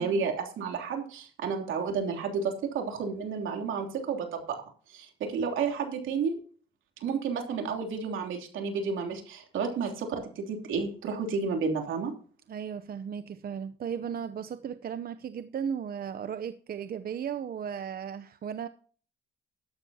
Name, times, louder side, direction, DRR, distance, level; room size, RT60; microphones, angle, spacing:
voice 1, 0.0-4.6 4.9-6.4 7.0-12.1, right 5 dB, 80° right, 3 dB, 3.1 m, -31 dB
voice 2, 12.5-18.7, right 8 dB, 50° right, 11 dB, 0.7 m, -36 dB
12.5 x 12.0 x 2.8 m, 0.42 s
cardioid pair, 90°, 20 cm